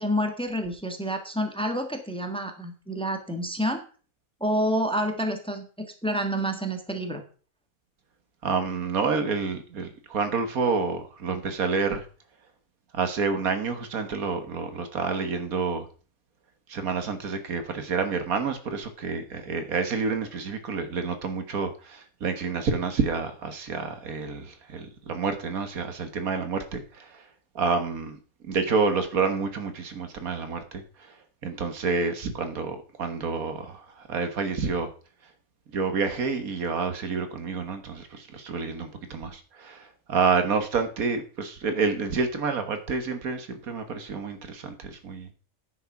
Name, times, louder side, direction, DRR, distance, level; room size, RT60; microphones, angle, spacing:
voice 1, 0.0-3.8 4.4-7.2, equal, 5° left, 5 dB, 1.4 m, -28 dB
voice 2, 8.4-12.1 12.9-15.9 16.7-27.3 27.6-31.2 31.4-34.9 35.7-45.3, right 4 dB, 75° right, 8 dB, 1.8 m, -29 dB
9.7 x 6.6 x 5.9 m, 0.38 s
omnidirectional pair, 1.5 m